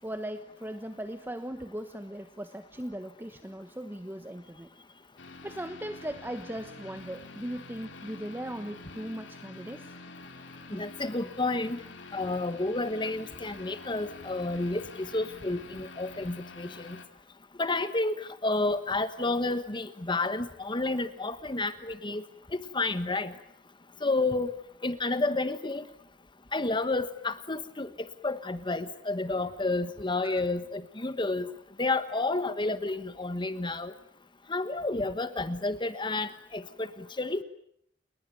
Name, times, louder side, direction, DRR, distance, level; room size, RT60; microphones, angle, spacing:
voice 1, 0.0-4.7 5.4-9.9 10.7-10.8 30.2-30.4, right 1 dB, 10° right, 9 dB, 1.2 m, -38 dB
sound 1, 5.2-17.0, left 3 dB, 90° left, 3.0 m, -47 dB
voice 2, 10.7-11.8 12.1-17.0 17.6-22.2 22.5-23.3 24.0-25.8 26.5-31.5 31.8-33.9 34.5-36.9 37.2-37.4, left 2 dB, 25° left, 12 dB, 1.3 m, -30 dB
29.5 x 21.5 x 9.2 m, 0.68 s
head